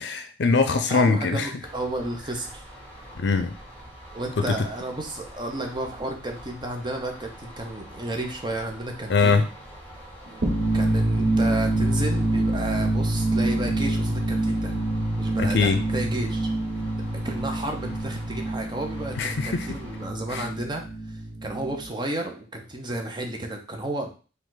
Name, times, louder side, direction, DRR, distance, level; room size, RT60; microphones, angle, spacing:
voice 1, 0.0-1.5 3.2-3.5 9.1-9.4 15.4-15.8 19.2-19.7 20.3-20.5, left 4 dB, 70° left, 8 dB, 0.5 m, -22 dB
voice 2, 0.9-2.6 4.1-9.5 10.7-14.8 15.2-16.5 17.2-24.1, right 1 dB, 25° right, 3 dB, 0.8 m, -32 dB
sound 1, 1.6-20.1, equal, 10° left, 2.6 m, -45 dB
sound 2, 10.3-21.8, right 1 dB, 60° right, 0.9 m, -26 dB
4.9 x 2.4 x 3.9 m, 0.36 s
head